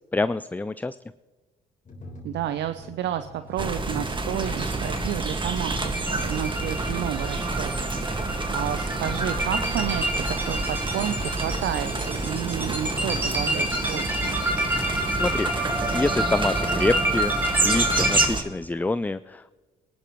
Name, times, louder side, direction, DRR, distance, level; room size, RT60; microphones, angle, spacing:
voice 1, 0.1-1.0 15.1-15.5 15.9-17.4 17.6-19.5, left 2 dB, 10° left, 15 dB, 0.3 m, -26 dB
sound 1, 1.9-11.6, equal, 45° left, 3.8 m, -43 dB
voice 2, 2.2-7.7 8.0-14.4, right 11 dB, 65° right, 11 dB, 0.6 m, -31 dB
sound 2, 3.6-18.4, right 3 dB, 25° right, 1.8 m, -29 dB
sound 3, 4.3-18.3, right 1 dB, 10° right, 3.5 m, -29 dB
22.0 x 11.5 x 3.1 m, 1.3 s
hypercardioid pair, 55°, 19 cm